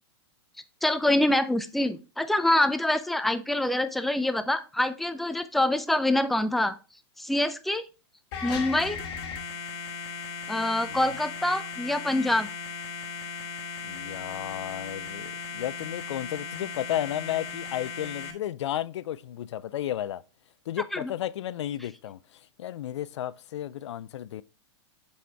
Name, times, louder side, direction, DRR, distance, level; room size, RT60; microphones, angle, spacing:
voice 1, 0.8-6.7 7.2-7.8 8.4-9.0 10.5-12.5 20.9-21.1, left 1 dB, ahead, 0.4 m, -25 dB
sound 1, 8.3-18.3, left 5 dB, 55° left, 1.5 m, -37 dB
voice 2, 13.8-20.2 20.7-24.4, left 12 dB, 80° left, 0.4 m, -33 dB
7.4 x 4.2 x 3.4 m
hypercardioid pair, 125°, 15 cm